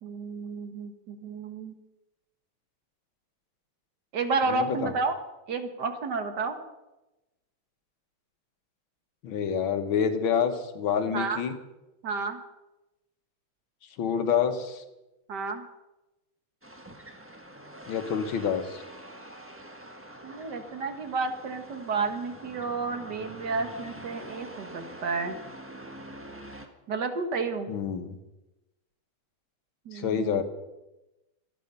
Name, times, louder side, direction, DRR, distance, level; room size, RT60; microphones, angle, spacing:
voice 1, 0.0-1.7 4.1-5.2 5.5-6.6 11.1-11.4 12.0-12.4 15.3-15.7 20.2-25.4 26.9-27.7 29.9-30.4, right 4 dB, 55° right, 7 dB, 1.9 m, -31 dB
voice 2, 4.5-4.9 9.2-11.5 14.0-14.8 17.9-18.8 27.7-28.2 29.9-30.4, left 7 dB, 75° left, 8 dB, 1.9 m, -27 dB
sound 1, 16.6-26.7, right 1 dB, 10° right, 0.9 m, -45 dB
25.0 x 8.4 x 5.5 m, 1.0 s
omnidirectional pair, 2.3 m